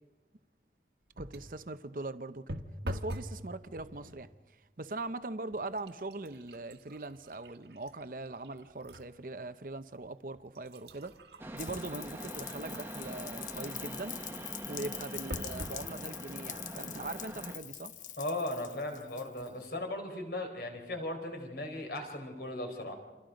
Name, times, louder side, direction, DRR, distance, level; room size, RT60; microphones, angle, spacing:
sound 1, 1.1-1.6 2.5-3.4 3.7-4.2 5.0-5.1 5.5-9.1 9.6-9.7 10.4-13.1 15.3-15.8 16.5-16.6 16.8-16.9, equal, 70° right, 1.6 m, -44 dB
voice 1, 1.2-2.6 2.8-4.3 4.8-11.2 11.5-14.2 14.7-17.9, right 2 dB, 50° right, 0.8 m, -41 dB
sound 2, 11.4-17.6, right 1 dB, 15° right, 1.2 m, -44 dB
Rain, 11.6-19.6, left 11 dB, 45° left, 0.7 m, -44 dB
voice 2, 18.2-23.0, left 1 dB, 60° left, 4.2 m, -37 dB
28.5 x 27.0 x 5.2 m
head